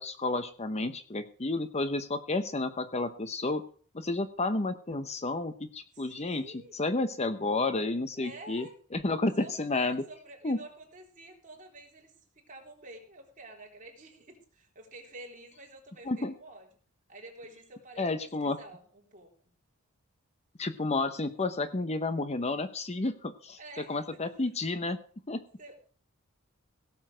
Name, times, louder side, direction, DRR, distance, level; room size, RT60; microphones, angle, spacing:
voice 1, 0.0-3.6 3.9-6.4 6.7-8.7 8.9-10.0 10.4-10.6 16.0-16.3 18.0-18.6 20.6-23.6 23.9-25.0 25.3-25.4, left 2 dB, 30° left, 11 dB, 0.8 m, -31 dB
voice 2, 5.9-6.8 8.2-8.8 9.4-16.7 17.1-19.3 23.6-24.4 25.6-25.7, right 2 dB, 35° right, 0 dB, 3.7 m, -49 dB
17.0 x 7.1 x 6.2 m, 0.44 s
head